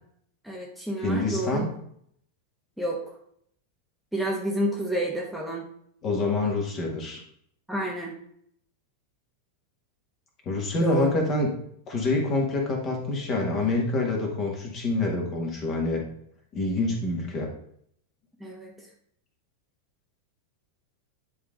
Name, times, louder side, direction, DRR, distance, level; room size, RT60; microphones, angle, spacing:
voice 1, 0.4-1.7 2.8-3.2 4.1-5.6 7.7-8.1 10.8-11.1 18.4-18.9, right 1 dB, ahead, -3 dB, 1.3 m, -30 dB
voice 2, 1.0-1.7 6.0-7.2 10.5-11.5 11.9-16.0 16.5-17.5, left 2 dB, 30° left, 0 dB, 2.0 m, -26 dB
10.5 x 3.7 x 3.8 m, 0.67 s
figure-of-eight pair, 90°, 0 cm